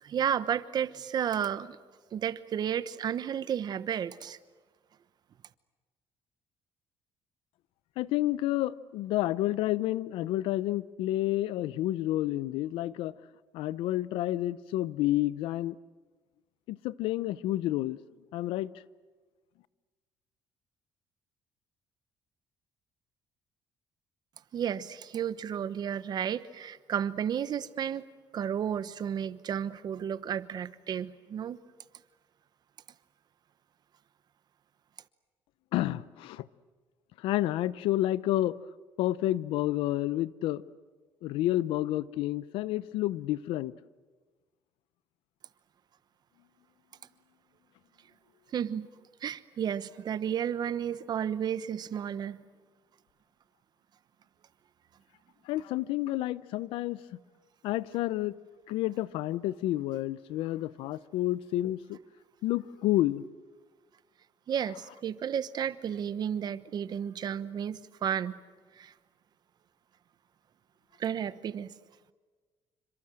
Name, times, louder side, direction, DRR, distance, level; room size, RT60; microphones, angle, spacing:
voice 1, 0.0-1.8 2.1-4.4 24.5-28.1 28.3-31.6 48.5-48.9 49.2-52.4 64.5-68.4 68.8-68.9 71.0-71.8, right 9 dB, 50° right, 15 dB, 1.1 m, -32 dB
voice 2, 8.0-13.1 13.5-15.7 16.7-18.0 18.3-18.7 35.7-36.5 37.2-38.6 39.0-40.6 41.2-43.7 55.5-57.0 57.6-58.4 58.7-62.0 62.4-63.2, left 15 dB, 90° left, 19 dB, 0.8 m, -30 dB
28.0 x 25.5 x 7.7 m, 1.3 s
cardioid pair, 110°, 9 cm